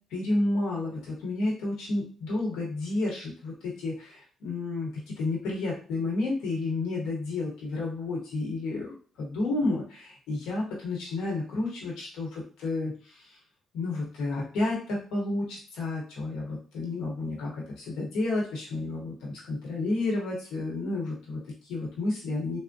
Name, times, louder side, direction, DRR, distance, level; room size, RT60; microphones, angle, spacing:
voice 1, 0.1-13.4 13.7-22.6, left 2 dB, 90° left, -3 dB, 0.9 m, -31 dB
3.4 x 2.0 x 2.6 m, 0.41 s
cardioid pair, 90°, 0 cm